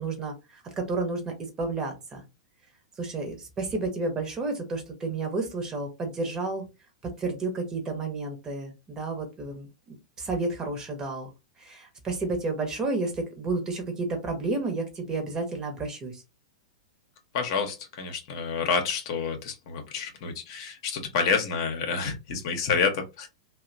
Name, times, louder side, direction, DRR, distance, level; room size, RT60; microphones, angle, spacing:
voice 1, 0.0-2.2 3.0-6.6 7.2-11.3 11.6-16.2, right 3 dB, 20° right, 3 dB, 0.8 m, -31 dB
voice 2, 17.3-23.3, left 5 dB, 50° left, 4 dB, 0.7 m, -28 dB
2.7 x 2.1 x 2.5 m, 0.26 s
figure-of-eight pair, 100°, 3 cm